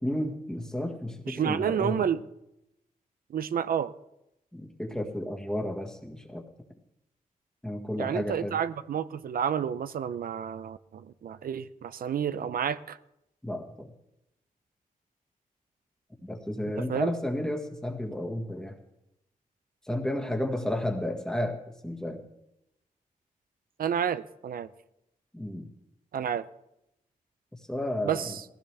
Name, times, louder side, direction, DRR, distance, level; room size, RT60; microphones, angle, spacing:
voice 1, 0.0-2.1 4.5-6.4 7.6-8.6 13.4-13.9 16.2-18.8 19.9-22.2 25.3-25.7 27.7-28.3, left 1 dB, 5° left, 1.6 m, -32 dB
voice 2, 1.3-2.2 3.3-3.9 8.0-13.0 16.9-17.1 23.8-24.7 26.1-26.5 28.0-28.4, right 8 dB, 85° right, 0.6 m, -30 dB
19.0 x 15.5 x 3.4 m
wide cardioid pair, 160°, 15 cm